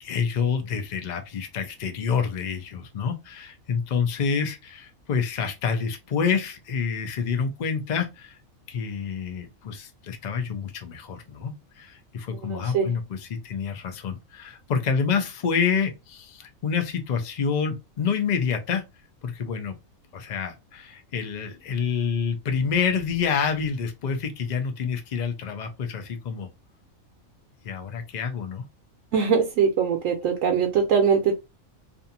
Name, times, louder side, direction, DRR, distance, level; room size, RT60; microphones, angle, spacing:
voice 1, 0.0-8.4 8.7-18.9 19.2-19.8 20.1-26.5 27.6-28.6, left 6 dB, 60° left, 0.4 m, -28 dB
voice 2, 12.4-12.9 29.1-31.3, right 6 dB, 75° right, 0.9 m, -22 dB
2.6 x 2.4 x 2.7 m
omnidirectional pair, 1.4 m